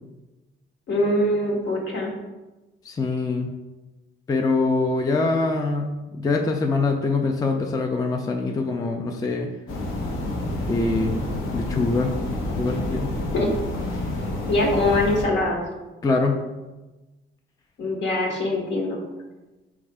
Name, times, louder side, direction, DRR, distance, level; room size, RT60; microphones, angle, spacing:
voice 1, 0.9-2.1 13.3-13.5 14.5-15.6 17.8-19.0, left 1 dB, 65° left, 0 dB, 1.1 m, -23 dB
voice 2, 2.8-3.5 4.3-9.5 10.7-11.2 11.5-12.1 12.6-13.1 16.0-16.4, left 3 dB, 20° left, 2 dB, 0.3 m, -24 dB
sound 1, 9.7-15.3, left 1 dB, 90° left, 0.8 m, -28 dB
4.1 x 2.4 x 4.7 m, 1.1 s
cardioid pair, 115°, 20 cm